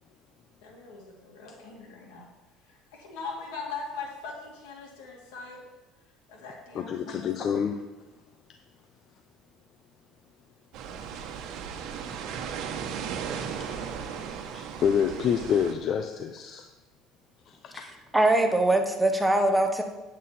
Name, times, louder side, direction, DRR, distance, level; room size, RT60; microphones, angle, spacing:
voice 1, 0.6-2.3 2.7-5.6 6.3-7.2, left 4 dB, 85° left, -1 dB, 2.6 m, -40 dB
voice 2, 6.7-7.8 14.5-16.7 17.5-17.9, left 7 dB, 45° left, 6 dB, 0.7 m, -27 dB
sound 1, 10.7-15.7, right 7 dB, 65° right, 1.2 m, -36 dB
voice 3, 18.1-19.8, right 1 dB, 5° right, 5 dB, 1.1 m, -22 dB
9.2 x 8.2 x 4.3 m, 1.1 s
supercardioid pair, 105°, 0 cm